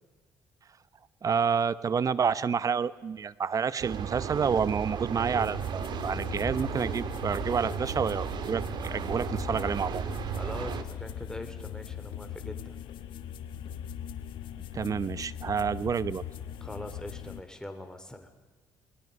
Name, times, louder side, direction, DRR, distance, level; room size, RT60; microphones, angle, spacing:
voice 1, 1.2-10.0 14.7-16.2, right 6 dB, 45° right, 16 dB, 1.0 m, -29 dB
sound 1, 3.8-10.8, right 8 dB, 60° right, 1.9 m, -34 dB
sound 2, 5.4-17.4, left 9 dB, 75° left, 1.3 m, -40 dB
voice 2, 10.4-12.8 16.6-18.3, left 1 dB, 10° left, 7 dB, 3.5 m, -42 dB
29.0 x 21.0 x 5.4 m, 1.3 s
supercardioid pair, 70°, 8 cm